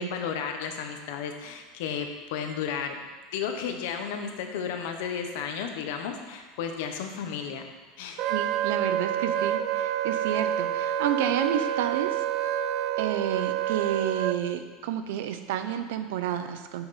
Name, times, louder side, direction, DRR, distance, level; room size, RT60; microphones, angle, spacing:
voice 1, 0.0-3.0 3.3-7.7 8.0-8.2, left 7 dB, 75° left, 5 dB, 1.0 m, -33 dB
Wind instrument woodwind instrument, 8.2-14.4, right 10 dB, 45° right, 0.3 m, -28 dB
voice 2, 8.3-12.2 13.0-16.9, right 10 dB, 80° right, 9 dB, 0.7 m, -30 dB
8.7 x 5.9 x 4.2 m, 1.3 s
supercardioid pair, 165°, 0 cm